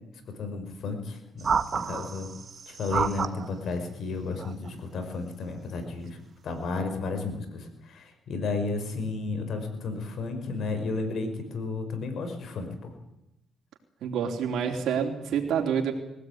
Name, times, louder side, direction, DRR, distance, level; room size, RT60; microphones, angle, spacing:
voice 1, 0.3-2.3 2.7-6.2 6.4-12.9, left 3 dB, 65° left, 7 dB, 5.3 m, -33 dB
sound 1, 1.4-3.5 4.4-4.7, right 6 dB, 45° right, 1.4 m, -30 dB
voice 2, 14.0-15.9, right 7 dB, 75° right, 2 dB, 3.5 m, -27 dB
20.5 x 17.0 x 9.5 m, 0.88 s
cardioid pair, 90°, 0 cm